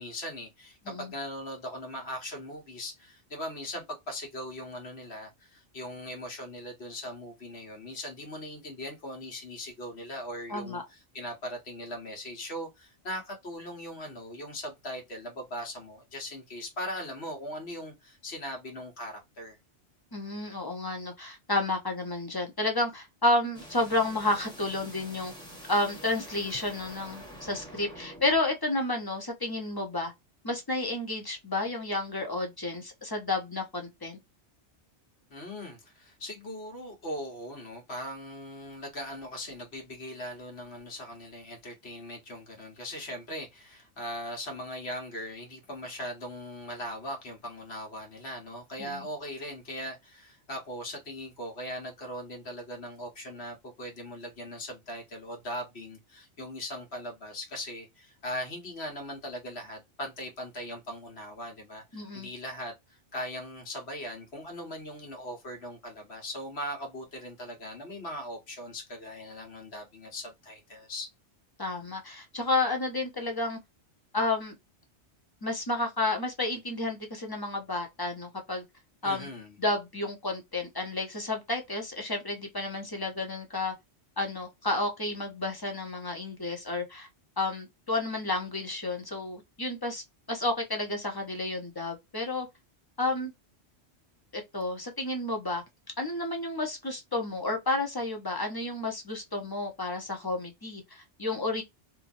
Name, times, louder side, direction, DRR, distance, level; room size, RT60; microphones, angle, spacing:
voice 1, 0.0-19.6 35.3-71.1 79.0-79.6, equal, 65° left, 1.5 m, -40 dB
voice 2, 10.5-10.8 20.1-25.3 25.7-30.1 30.4-34.2 48.8-49.0 61.9-62.3 71.6-73.6 74.1-74.5 75.4-78.6 79.0-79.3 79.6-83.7 84.2-87.1 87.4-90.0 90.3-92.5 93.0-93.3 94.3-95.6 96.0-101.6, left 2 dB, 25° left, 0.6 m, -31 dB
sound 1, 23.5-28.4, equal, 5° left, 1.0 m, -47 dB
2.8 x 2.6 x 2.5 m
omnidirectional pair, 1.2 m